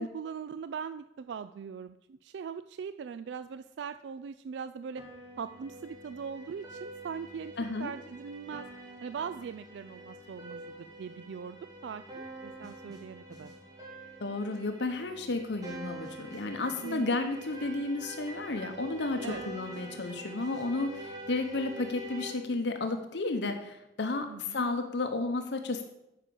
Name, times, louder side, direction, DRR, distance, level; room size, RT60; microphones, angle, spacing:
voice 1, 0.0-5.0 5.4-7.5 7.8-8.7 9.0-11.6 11.8-13.5 16.8-17.1 19.2-19.4 24.3-24.6, right 6 dB, 75° right, 12 dB, 0.3 m, -40 dB
sound 1, 5.0-22.3, right 1 dB, 20° right, 2.0 m, -46 dB
voice 2, 7.6-7.9 14.2-25.8, left 3 dB, 70° left, 6 dB, 0.8 m, -32 dB
9.8 x 5.0 x 6.8 m, 0.88 s
head